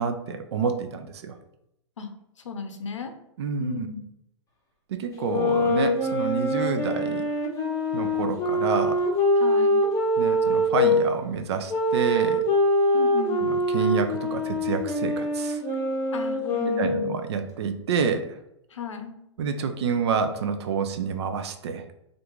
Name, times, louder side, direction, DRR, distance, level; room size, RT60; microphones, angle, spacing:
voice 1, 0.0-1.4 3.4-3.9 4.9-7.3 7.9-9.0 10.2-12.4 13.4-15.6 16.8-18.4 19.4-21.9, right 6 dB, 60° right, 7 dB, 0.5 m, -28 dB
voice 2, 2.4-3.1 3.6-4.0 9.4-9.8 12.9-13.5 16.1-17.1 18.7-19.1, left 6 dB, 80° left, 6 dB, 0.6 m, -34 dB
sound 1, 5.2-11.0 11.7-17.2, left 1 dB, 20° left, 1.0 m, -24 dB
2.9 x 2.5 x 3.5 m, 0.81 s
hypercardioid pair, 115°, 16 cm